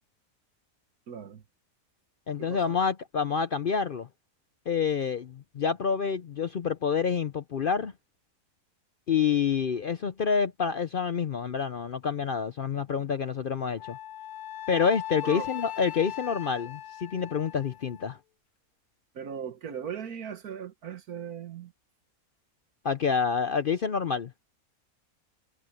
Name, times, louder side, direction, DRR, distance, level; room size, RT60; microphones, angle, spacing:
voice 1, 1.1-1.4 2.4-2.8 15.2-15.5 19.1-21.7, right 7 dB, 80° right, 1.7 m, -38 dB
voice 2, 2.3-4.1 4.7-7.9 9.1-14.0 14.7-18.2 22.8-24.3, left 6 dB, 55° left, 0.6 m, -28 dB
Wind instrument woodwind instrument, 13.8-18.2, left 13 dB, 85° left, 1.3 m, -39 dB
omnidirectional pair, 1.5 m